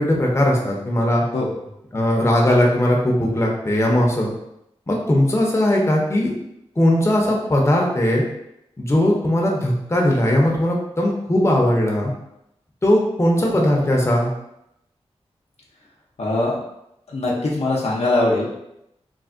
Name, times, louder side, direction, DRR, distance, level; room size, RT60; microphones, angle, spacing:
voice 1, 0.0-1.2 1.9-4.3 4.9-6.3 6.8-8.2 8.8-12.1 12.8-14.3, left 1 dB, 25° left, -2 dB, 0.7 m, -19 dB
voice 2, 16.2-16.6 17.1-18.5, left 2 dB, 70° left, -3 dB, 0.6 m, -21 dB
3.3 x 2.2 x 2.5 m, 0.82 s
cardioid pair, 55°, 11 cm